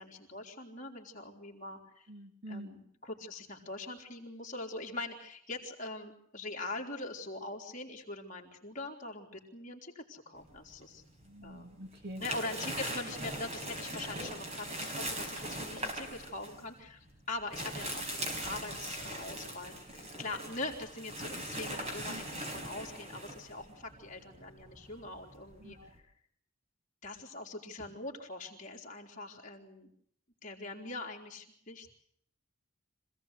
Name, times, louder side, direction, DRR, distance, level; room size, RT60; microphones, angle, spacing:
voice 1, 0.0-2.1 2.5-11.0 11.4-11.7 12.2-25.8 27.0-29.9 30.4-31.9, left 2 dB, 40° left, 0 dB, 3.8 m, -42 dB
voice 2, 2.1-2.7 11.2-12.2 22.1-22.2 25.6-25.9, right 1 dB, 50° right, 6 dB, 2.8 m, -46 dB
sound 1, 10.5-11.4 11.8-26.0, right 1 dB, 30° right, 5.1 m, -41 dB
26.0 x 17.5 x 8.3 m, 0.68 s
head